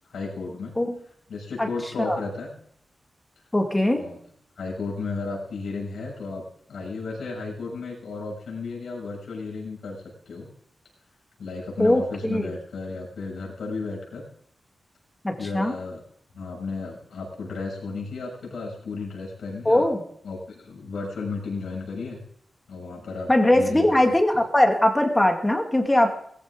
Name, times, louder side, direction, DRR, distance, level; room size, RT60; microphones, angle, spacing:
voice 1, 0.1-0.8 1.3-2.5 4.0-4.2 4.6-6.4 6.7-10.5 11.4-14.3 15.4-16.0 16.3-19.9 20.2-22.2 22.7-24.0, left 3 dB, 90° left, -2 dB, 7.0 m, -33 dB
voice 2, 3.5-4.0 11.8-12.5 15.2-15.7 19.7-20.0 23.3-26.1, left 1 dB, 10° left, 3 dB, 2.1 m, -20 dB
20.0 x 15.0 x 3.8 m, 0.67 s
wide cardioid pair, 160°, 0 cm